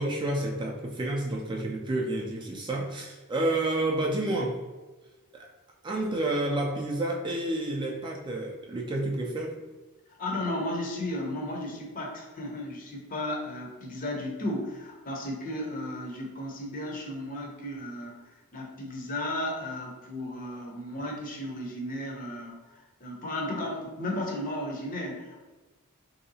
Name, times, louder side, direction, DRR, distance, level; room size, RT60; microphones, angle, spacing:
voice 1, 0.0-4.6 5.3-5.5 5.8-9.5, right 1 dB, 20° right, -1 dB, 0.3 m, -30 dB
voice 2, 10.2-25.5, left 1 dB, 40° left, 0 dB, 0.7 m, -34 dB
3.2 x 2.7 x 2.7 m, 1.2 s
head